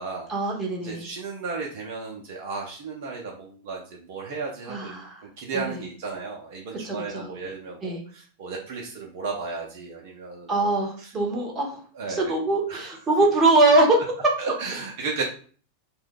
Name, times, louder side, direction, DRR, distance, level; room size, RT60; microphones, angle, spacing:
voice 1, 0.3-1.1 4.7-5.2 5.5-5.8 6.8-7.3 7.8-8.0 10.5-11.8 12.1-14.0, right 2 dB, 20° right, 0 dB, 0.9 m, -22 dB
voice 2, 0.8-11.5 11.9-12.3 12.7-12.9 14.4-15.2, right 4 dB, 50° right, -1 dB, 0.7 m, -34 dB
2.6 x 2.3 x 3.6 m, 0.42 s
figure-of-eight pair, 90°, 0 cm